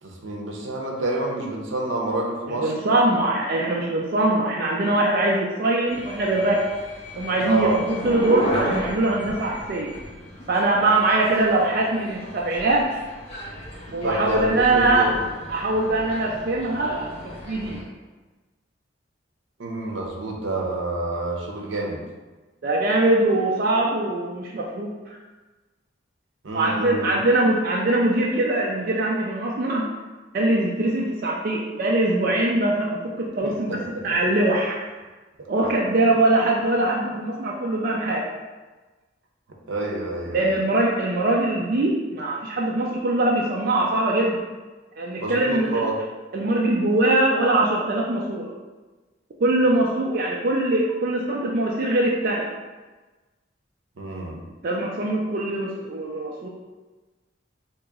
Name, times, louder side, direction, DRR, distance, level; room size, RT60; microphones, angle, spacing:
voice 1, 0.0-2.7 7.5-7.8 14.0-15.2 19.6-22.0 26.4-27.2 33.4-34.0 35.4-35.7 39.7-40.6 45.2-46.0 54.0-54.4, right 2 dB, 80° right, -1 dB, 0.7 m, -28 dB
voice 2, 2.6-6.6 7.1-9.9 10.5-13.0 13.9-15.1 15.5-17.1 17.4-17.8 22.6-25.2 26.5-29.9 30.3-34.7 35.5-38.3 40.3-44.4 45.0-45.8 46.3-48.5 49.4-52.5 54.6-56.5, right 2 dB, 50° right, -3 dB, 0.4 m, -22 dB
sound 1, 5.9-17.8, equal, 30° left, 0.7 m, -34 dB
2.9 x 2.9 x 3.6 m, 1.2 s
head